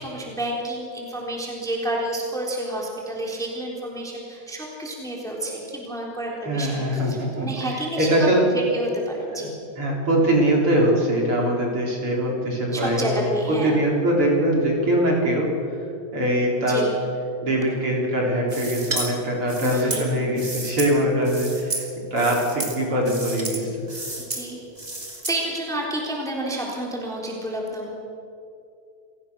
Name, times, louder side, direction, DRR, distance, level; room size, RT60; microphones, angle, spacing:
voice 1, 0.0-8.1 8.5-9.5 12.7-13.9 16.6-16.9 19.6-20.2 24.3-24.7 25.3-28.0, right 1 dB, ahead, -2 dB, 3.4 m, -30 dB
voice 2, 6.4-7.5 8.0-8.4 9.3-9.5 9.8-15.5 16.1-16.9 17.4-21.9 22.1-23.8, right 1 dB, 45° right, -2 dB, 4.6 m, -22 dB
sound 1, 18.5-19.1 19.5-20.9 21.2-21.9 22.2-22.7 23.0-23.6 23.9-24.4 24.8-25.4, right 2 dB, 15° right, 2.6 m, -31 dB
28.5 x 17.5 x 6.3 m, 2.6 s
omnidirectional pair, 3.3 m